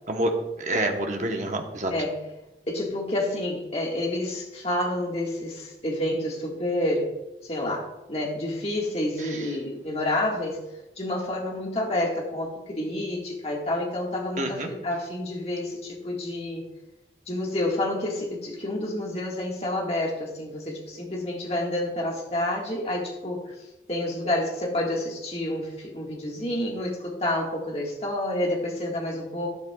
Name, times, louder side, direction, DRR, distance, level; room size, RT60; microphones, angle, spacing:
voice 1, 0.1-1.9 9.2-9.6 14.4-14.7, right 1 dB, 45° right, 3 dB, 1.0 m, -28 dB
voice 2, 2.7-7.1 7.5-10.6 11.0-16.6 17.3-23.4 23.9-29.5, left 1 dB, 35° left, -2 dB, 1.7 m, -29 dB
12.0 x 10.5 x 2.3 m, 0.97 s
head